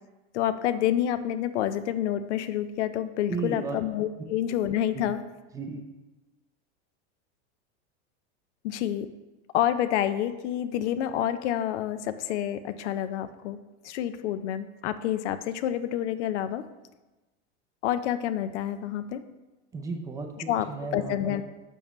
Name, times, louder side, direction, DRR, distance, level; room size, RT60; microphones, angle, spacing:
voice 1, 0.3-5.2 8.6-9.1 9.5-16.6 17.8-19.2 20.5-20.7 20.9-21.4, left 11 dB, 75° left, 11 dB, 0.6 m, -28 dB
voice 2, 3.3-3.8 4.9-5.0 5.5-5.9 19.7-21.4, right 4 dB, 10° right, 3 dB, 0.4 m, -35 dB
7.1 x 7.0 x 3.1 m, 1.1 s
supercardioid pair, 160°, 35 cm